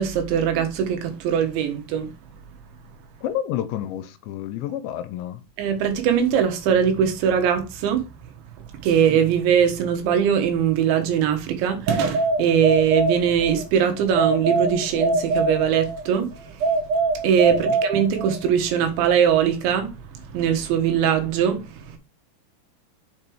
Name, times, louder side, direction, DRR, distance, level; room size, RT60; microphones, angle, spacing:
voice 1, 0.0-2.1 5.6-8.1 8.6-16.8 17.2-22.0, right 8 dB, 80° right, 3.7 m, -21 dB
voice 2, 3.2-5.4 17.5-17.6, left 11 dB, 80° left, 2.9 m, -29 dB
sound 1, 11.9-13.6 14.2-16.1 16.6-18.5, right 3 dB, 60° right, 3.0 m, -23 dB
7.4 x 5.4 x 4.7 m
omnidirectional pair, 5.4 m